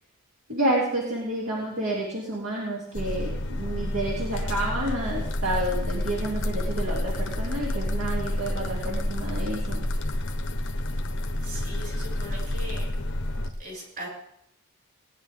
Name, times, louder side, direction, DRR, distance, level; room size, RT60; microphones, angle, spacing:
voice 1, 0.5-9.8, right 1 dB, 60° right, -5 dB, 2.9 m, -29 dB
sound 1, 2.9-13.5, left 1 dB, 60° left, 1.2 m, -29 dB
voice 2, 11.4-12.9 13.6-14.1, equal, 45° right, -3 dB, 7.2 m, -39 dB
20.0 x 10.5 x 3.7 m, 0.73 s
head